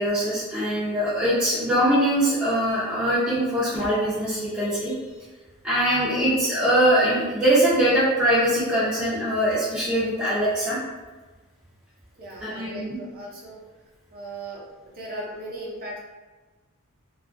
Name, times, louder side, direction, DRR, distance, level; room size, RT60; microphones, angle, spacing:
voice 1, 0.0-5.0 5.6-10.8 12.4-12.8, right 1 dB, 5° right, -14 dB, 0.6 m, -22 dB
voice 2, 12.1-13.6 14.1-14.6 14.9-16.0, right 1 dB, 45° right, -4 dB, 0.7 m, -37 dB
2.6 x 2.4 x 2.5 m, 1.2 s
head